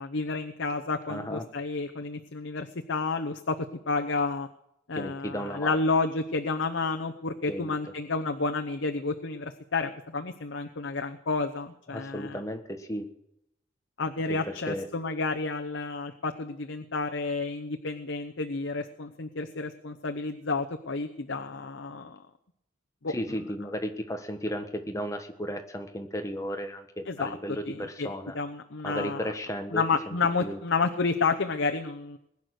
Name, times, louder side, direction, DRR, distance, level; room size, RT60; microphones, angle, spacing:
voice 1, 0.0-3.5 3.9-4.5 4.9-12.4 14.0-22.2 23.0-23.4 27.1-27.4 27.7-28.1 28.3-29.2 29.7-32.2, left 3 dB, 80° left, 5 dB, 0.9 m, -30 dB
voice 2, 1.1-1.4 4.9-5.8 7.5-7.8 11.9-13.1 14.3-14.9 23.1-28.3 28.8-30.1 30.4-30.6, equal, 15° left, 6 dB, 1.4 m, -34 dB
20.5 x 9.7 x 6.5 m, 0.79 s
head